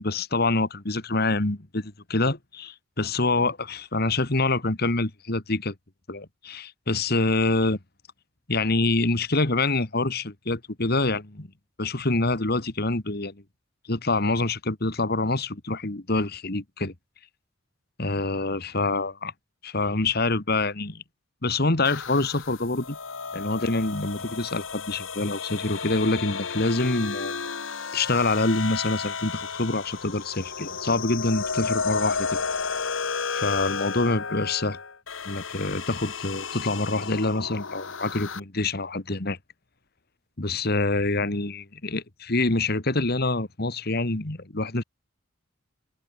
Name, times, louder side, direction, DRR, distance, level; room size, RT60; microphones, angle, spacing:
voice 1, 0.0-5.7 6.1-7.8 8.5-11.5 11.8-13.4 13.9-16.9 18.0-19.3 19.6-21.0 21.4-23.0 23.3-27.3 27.9-32.4 33.3-34.8 35.3-39.4 40.4-44.8, left 2 dB, 50° left, 2.0 m, -26 dB
sound 1, 21.8-38.4, left 5 dB, 75° left, 1.9 m, -32 dB
head